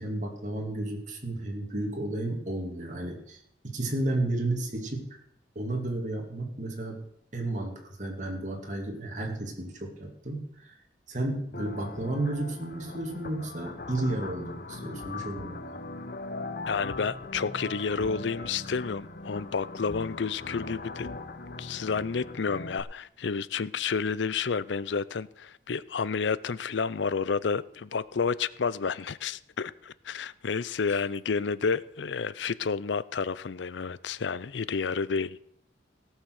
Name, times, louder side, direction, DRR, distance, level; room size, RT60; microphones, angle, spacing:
voice 1, 0.0-5.1 5.5-7.0 7.3-10.8 11.1-15.8, right 1 dB, 45° right, 2.5 m, -32 dB
sound 1, 11.5-22.8, left 2 dB, 55° left, 1.0 m, -40 dB
voice 2, 16.7-21.1 21.6-35.4, left 5 dB, 85° left, 0.5 m, -30 dB
17.0 x 6.4 x 6.5 m
head